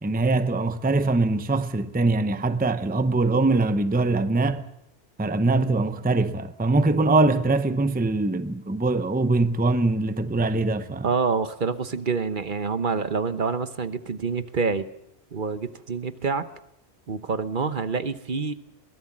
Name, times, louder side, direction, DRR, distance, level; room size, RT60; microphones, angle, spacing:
voice 1, 0.0-4.6 5.2-11.1, right 2 dB, 10° right, 0.7 m, -22 dB
voice 2, 11.0-14.9 15.3-16.4 17.1-18.5, right 5 dB, 50° right, 1.1 m, -27 dB
22.5 x 18.5 x 7.3 m
omnidirectional pair, 1.1 m